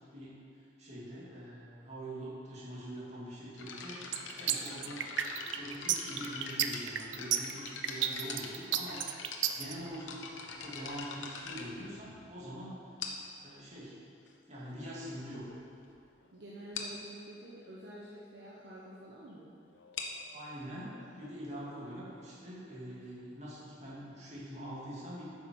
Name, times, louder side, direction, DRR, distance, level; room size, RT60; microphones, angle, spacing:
voice 1, 0.8-5.0 5.6-9.0 9.5-10.3 10.6-12.8 13.4-13.9 14.5-15.5 20.3-25.3, equal, 40° right, -7 dB, 2.5 m, -44 dB
sound 1, 3.6-12.4 13.0-13.4 14.3-14.4 15.0-15.1 15.3-15.5 15.9-16.0 16.2-16.3 16.7-17.0 19.7-23.2, left 4 dB, 90° left, 1.0 m, -44 dB
sound 2, 4.1-9.7, right 10 dB, 80° right, 0.5 m, -32 dB
voice 2, 16.3-19.5, right 1 dB, 60° right, -6 dB, 1.0 m, -48 dB
9.6 x 6.3 x 5.4 m, 2.5 s
head